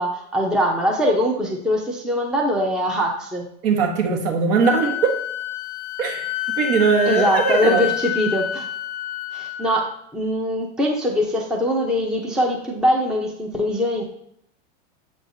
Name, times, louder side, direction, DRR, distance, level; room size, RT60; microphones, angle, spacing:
voice 1, 0.0-3.5 7.1-8.7 9.3-14.1, equal, ahead, -1 dB, 0.7 m, -22 dB
voice 2, 3.6-5.2 6.0-7.9, right 5 dB, 50° right, 4 dB, 1.3 m, -20 dB
Wind instrument woodwind instrument, 4.6-9.8, left 12 dB, 45° left, 0.5 m, -28 dB
7.9 x 4.7 x 2.6 m, 0.70 s
hypercardioid pair, 125°, 39 cm